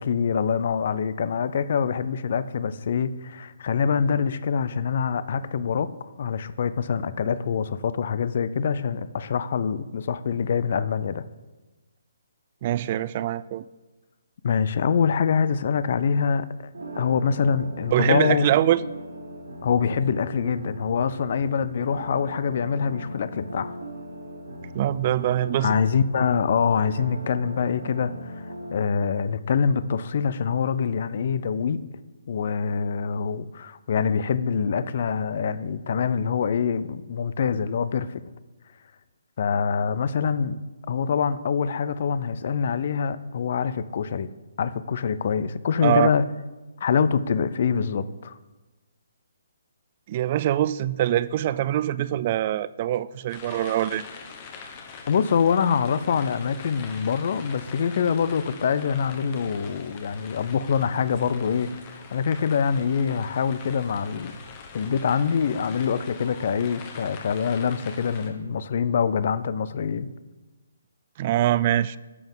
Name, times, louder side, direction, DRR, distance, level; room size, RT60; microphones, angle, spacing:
voice 1, 0.0-11.2 14.4-16.7 17.0-18.5 19.6-23.7 25.6-31.8 32.3-38.2 39.4-40.6 40.9-44.3 44.6-46.2 46.8-48.4 55.1-61.7 62.1-64.3 64.7-70.1, left 6 dB, 50° left, 15 dB, 0.5 m, -25 dB
voice 2, 12.6-13.6 17.9-18.8 24.7-25.8 45.8-46.1 50.1-54.0 71.2-72.0, right 12 dB, 35° right, 17 dB, 0.3 m, -23 dB
sound 1, 16.7-28.7, equal, 75° right, 3.1 m, -39 dB
sound 2, 53.3-68.3, left 5 dB, 30° left, 1.2 m, -43 dB
10.5 x 7.1 x 3.8 m, 1.2 s
figure-of-eight pair, 140°, 0 cm